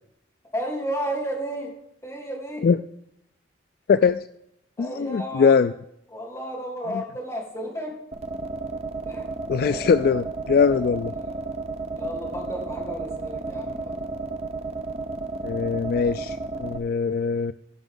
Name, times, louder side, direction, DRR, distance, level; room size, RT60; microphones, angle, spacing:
voice 1, 0.5-1.7 2.0-2.7 4.8-5.6 6.1-8.0 9.1-9.3 9.6-10.2 11.2-11.4 12.0-14.0, right 1 dB, 15° left, -4 dB, 3.6 m, -33 dB
voice 2, 3.9-4.2 4.8-5.7 6.9-7.0 9.5-11.1 15.4-17.5, left 6 dB, 55° left, 12 dB, 0.3 m, -21 dB
sound 1, 8.1-16.8, right 3 dB, 35° right, 0.8 m, -32 dB
16.5 x 6.0 x 3.8 m, 0.76 s
head